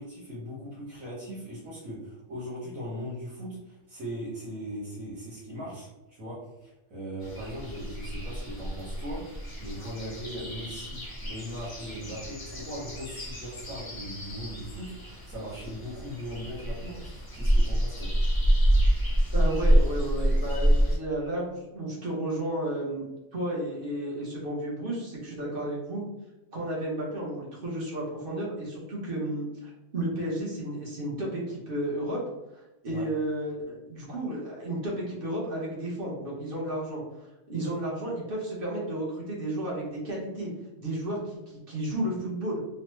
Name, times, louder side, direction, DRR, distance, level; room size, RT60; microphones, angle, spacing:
voice 1, 0.0-9.2 9.6-18.1 32.9-33.0, equal, 80° right, -8 dB, 1.4 m, -39 dB
sound 1, 7.2-21.0, equal, 25° left, 0.5 m, -27 dB
voice 2, 19.3-23.1 23.3-26.0 26.5-32.2 32.5-40.5 40.8-42.6, right 1 dB, 45° right, -5 dB, 1.0 m, -32 dB
3.1 x 2.1 x 3.0 m, 0.96 s
omnidirectional pair, 1.4 m